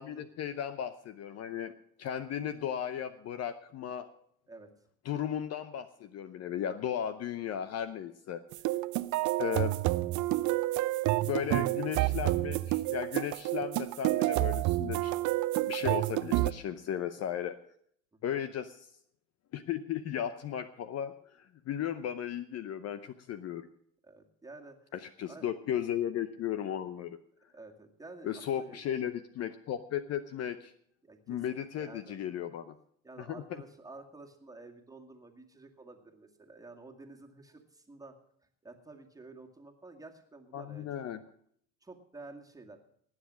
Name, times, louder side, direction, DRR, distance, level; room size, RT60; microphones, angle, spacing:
voice 1, 0.0-1.7 2.0-4.1 5.0-8.4 9.4-9.8 11.2-15.1 15.7-17.6 18.2-18.9 19.5-23.7 24.9-27.2 28.2-30.7 31.3-32.7 33.2-33.4 40.5-41.2, left 9 dB, 40° left, 12 dB, 0.8 m, -35 dB
sound 1, 8.5-16.5, right 18 dB, 50° right, 0.6 m, -29 dB
voice 2, 24.0-24.9 25.3-25.5 27.5-28.8 31.0-32.2 33.0-38.1 38.6-40.9 41.8-42.8, right 3 dB, 10° right, 2 dB, 2.1 m, -51 dB
19.0 x 7.3 x 6.3 m, 0.65 s
supercardioid pair, 100°, 39 cm